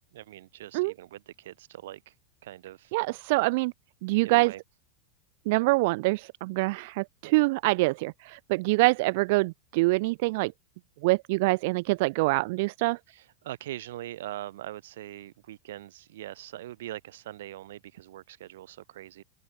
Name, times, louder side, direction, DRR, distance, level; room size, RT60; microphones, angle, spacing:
voice 1, 0.0-2.1 2.4-2.9 4.2-4.6 13.1-19.2, right 14 dB, 80° right, 2.3 m, -42 dB
voice 2, 2.9-3.7 4.0-4.5 5.5-10.5 11.0-13.0, right 24 dB, 55° right, 0.7 m, -25 dB
supercardioid pair, 155°, 0 cm